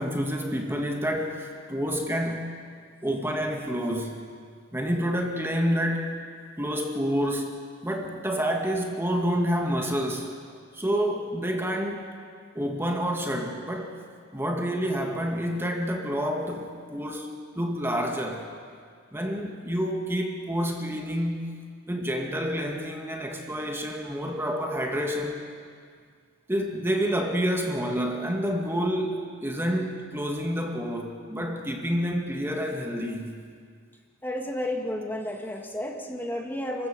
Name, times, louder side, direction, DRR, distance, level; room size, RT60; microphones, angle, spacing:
voice 1, 0.0-2.5 3.0-4.2 4.7-6.1 6.6-10.3 10.7-12.1 12.5-14.0 14.3-17.3 17.6-18.5 19.1-21.6 21.9-25.4 26.5-33.4, equal, 10° right, 1 dB, 1.9 m, -28 dB
voice 2, 34.2-36.9, left 1 dB, 10° left, 1 dB, 2.0 m, -32 dB
29.0 x 16.0 x 6.8 m, 2.1 s
head